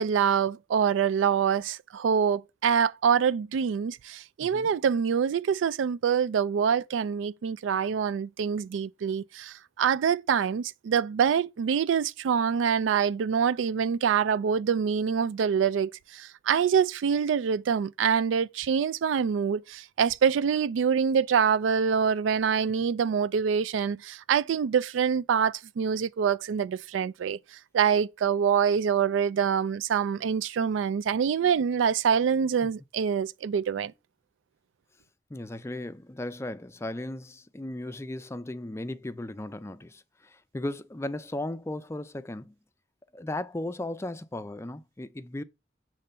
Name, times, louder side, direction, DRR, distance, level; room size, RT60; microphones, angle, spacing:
voice 1, 0.0-27.4 27.7-33.9, right 7 dB, 85° right, 0.3 m, -25 dB
voice 2, 4.4-4.7 32.6-32.7 35.3-42.6 43.1-45.4, left 1 dB, 15° left, 0.4 m, -36 dB
6.7 x 3.2 x 5.5 m
head